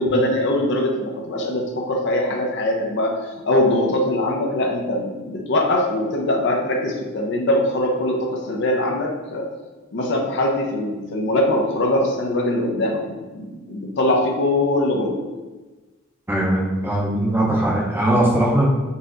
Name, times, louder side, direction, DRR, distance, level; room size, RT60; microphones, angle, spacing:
voice 1, 0.0-9.5 9.9-15.2, left 1 dB, 55° left, 0 dB, 0.5 m, -22 dB
voice 2, 16.3-18.6, right 1 dB, 10° right, -4 dB, 0.5 m, -20 dB
4.0 x 2.7 x 2.4 m, 1.2 s
head